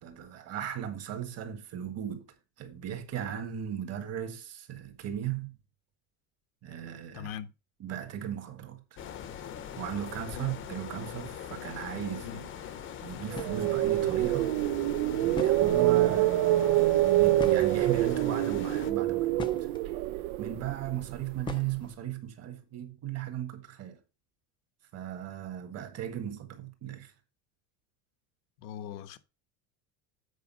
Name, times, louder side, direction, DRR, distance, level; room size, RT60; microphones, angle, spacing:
voice 1, 0.0-2.2 2.6-5.5 6.6-7.3 7.8-8.8 9.8-12.7 13.0-14.5 15.2-16.3 16.7-19.5 20.4-24.0 24.9-27.1, right 10 dB, 35° right, 1.7 m, -37 dB
voice 2, 7.1-7.5 10.4-10.5 12.2-12.4 28.6-29.2, left 9 dB, 80° left, 1.1 m, -40 dB
sound 1, 9.0-18.9, left 9 dB, 30° left, 0.8 m, -42 dB
sound 2, 13.3-13.7 14.9-15.0 15.3-16.1 17.4-18.2 18.9-19.8 21.4-22.1, left 5 dB, 10° left, 0.4 m, -40 dB
sound 3, 13.3-21.4, right 15 dB, 80° right, 0.7 m, -26 dB
8.3 x 4.9 x 5.4 m
cardioid pair, 165°, 41 cm